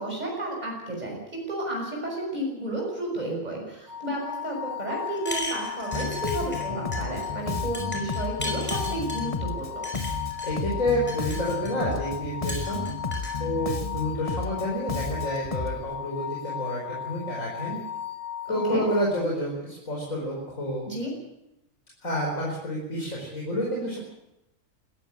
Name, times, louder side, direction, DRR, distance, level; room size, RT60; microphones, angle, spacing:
voice 1, 0.0-9.9 18.5-18.8 20.8-21.1, right 1 dB, 30° right, -1 dB, 5.9 m, -32 dB
sound 1, 3.9-19.0, left 10 dB, 55° right, 2.5 m, -36 dB
sound 2, 5.2-6.7 6.9-7.3 7.7-9.3 9.8-10.5 10.9-12.0 12.5-13.4, left 1 dB, 10° left, 5.3 m, -36 dB
Bass guitar, 5.9-15.8, left 3 dB, 30° left, 1.2 m, -33 dB
voice 2, 10.4-12.9 13.4-17.8 18.5-20.9 22.0-24.0, equal, 80° left, -3 dB, 5.4 m, -29 dB
20.5 x 15.0 x 8.9 m, 0.87 s
omnidirectional pair, 1.4 m